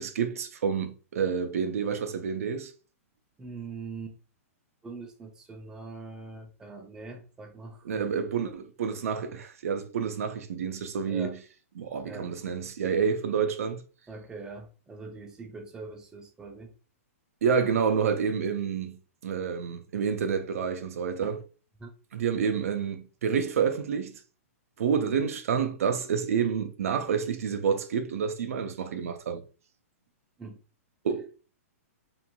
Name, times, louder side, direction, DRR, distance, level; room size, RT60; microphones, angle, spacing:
voice 1, 0.0-2.7 7.8-11.4 11.8-13.8 17.4-21.4 22.1-24.1 24.8-29.4 31.0-31.3, right 6 dB, 75° right, 0.5 m, -28 dB
voice 2, 3.4-4.2 4.8-8.1 11.1-11.4 12.0-12.3 14.1-16.7 21.2-21.4 21.8-21.9 30.4-30.6, right 3 dB, 10° right, 0.4 m, -42 dB
3.0 x 2.5 x 2.2 m
hypercardioid pair, 135°, 8 cm